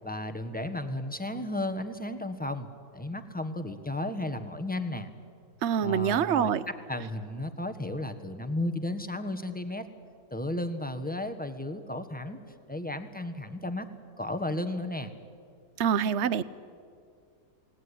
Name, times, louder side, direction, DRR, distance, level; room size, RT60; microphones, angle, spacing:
voice 1, 0.0-5.1 5.8-9.8 10.3-12.4 12.7-13.9 14.2-15.1, left 1 dB, 5° left, 8 dB, 1.3 m, -34 dB
voice 2, 5.6-6.6 15.8-16.4, right 8 dB, 55° right, 17 dB, 1.0 m, -25 dB
28.0 x 19.0 x 10.0 m, 2.3 s
omnidirectional pair, 1.6 m